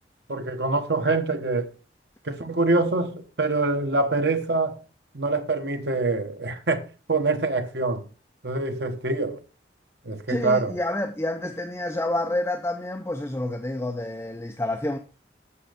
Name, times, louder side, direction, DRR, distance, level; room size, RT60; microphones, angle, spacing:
voice 1, 0.3-1.7 2.2-4.8 5.1-8.0 8.4-9.4 10.0-10.7, right 3 dB, 75° right, 1.2 m, -25 dB
voice 2, 10.3-15.0, left 1 dB, 15° left, 0.5 m, -28 dB
8.5 x 6.5 x 5.1 m
head